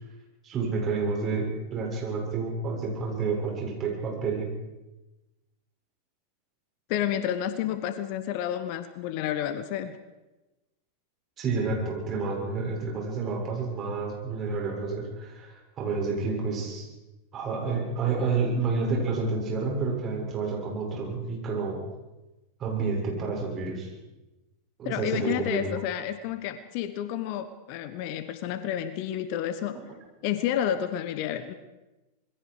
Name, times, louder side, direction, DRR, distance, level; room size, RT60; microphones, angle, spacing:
voice 1, 0.4-4.5 11.4-16.9 17.3-21.8 22.6-23.9 24.8-25.7, right 4 dB, 30° right, -1 dB, 7.1 m, -29 dB
voice 2, 6.9-10.0 24.8-29.8 30.2-31.5, left 10 dB, 45° left, 12 dB, 1.2 m, -30 dB
27.0 x 22.0 x 5.0 m, 1.1 s
figure-of-eight pair, 90°, 0 cm